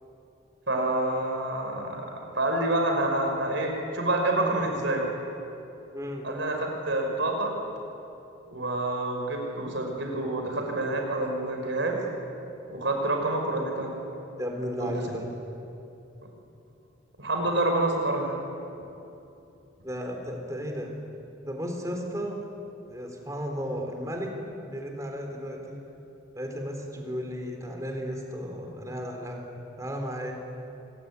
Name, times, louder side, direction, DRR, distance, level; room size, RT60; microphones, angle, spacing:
voice 1, 0.7-5.1 6.2-7.5 8.5-12.0 12.7-14.0 14.8-14.9 16.2-16.3 17.2-18.4, right 2 dB, 70° right, 2 dB, 5.6 m, -28 dB
voice 2, 5.9-6.2 14.4-15.3 19.8-20.9 21.4-22.4 22.9-24.4 24.7-25.8 26.4-30.3, equal, 15° right, 2 dB, 3.7 m, -34 dB
25.5 x 21.0 x 9.7 m, 2.9 s
head